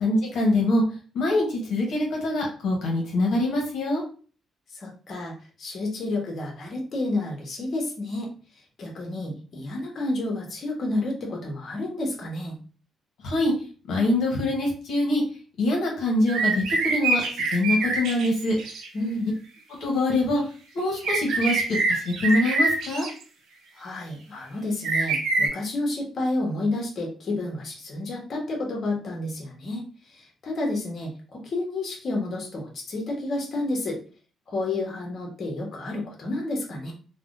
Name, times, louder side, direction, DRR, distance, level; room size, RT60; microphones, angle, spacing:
voice 1, 0.0-0.8 1.1-4.0 13.2-13.5 13.9-15.2 15.6-17.2 17.5-18.6 19.8-20.4 20.7-23.1, left 1 dB, 75° left, -1 dB, 0.9 m, -24 dB
voice 2, 4.7-8.3 8.8-12.6 18.9-19.3 23.7-34.0 34.5-36.9, left 2 dB, 50° left, -1 dB, 0.9 m, -30 dB
sound 1, 16.3-18.9 20.8-23.1 24.8-25.5, right 3 dB, 80° right, 0.7 m, -25 dB
3.4 x 2.1 x 2.5 m, 0.39 s
cardioid pair, 90°, 0 cm